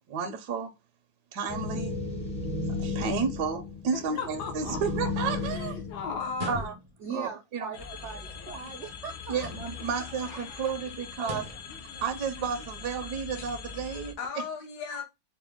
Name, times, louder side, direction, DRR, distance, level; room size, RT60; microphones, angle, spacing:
voice 1, 0.1-0.7 1.3-2.0 2.7-5.7 6.5-6.7 7.1-7.7 9.3-11.4 12.0-14.4 14.9-15.0, right 6 dB, 70° right, 1.0 m, -32 dB
sound 1, 1.5-6.6, left 3 dB, 5° left, 0.5 m, -34 dB
voice 2, 3.9-6.7 12.4-12.5 14.2-15.0, left 6 dB, 65° left, 1.2 m, -37 dB
sound 2, 6.3-7.1 9.3-10.0 11.2-11.7, right 1 dB, 45° right, 0.6 m, -39 dB
voice 3, 7.0-9.5 9.9-10.0 10.3-10.4 11.2-11.3, right 5 dB, 85° right, 0.6 m, -40 dB
sound 3, 7.7-14.1, left 5 dB, 85° left, 1.4 m, -42 dB
4.3 x 2.1 x 3.4 m
omnidirectional pair, 2.1 m